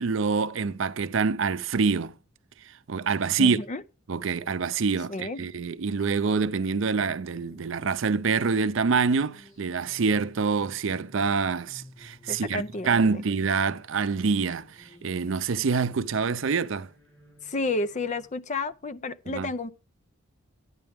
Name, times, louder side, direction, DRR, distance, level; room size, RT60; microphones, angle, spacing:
voice 1, 0.0-2.2 2.6-3.6 4.1-16.9 19.3-19.5, right 5 dB, 65° right, 0.5 m, -26 dB
voice 2, 3.4-3.8 5.1-5.4 12.3-13.2 17.4-19.7, left 2 dB, 35° left, 0.5 m, -31 dB
sound 1, 7.0-18.2, left 1 dB, 15° left, 6.7 m, -54 dB
12.0 x 9.6 x 3.4 m
head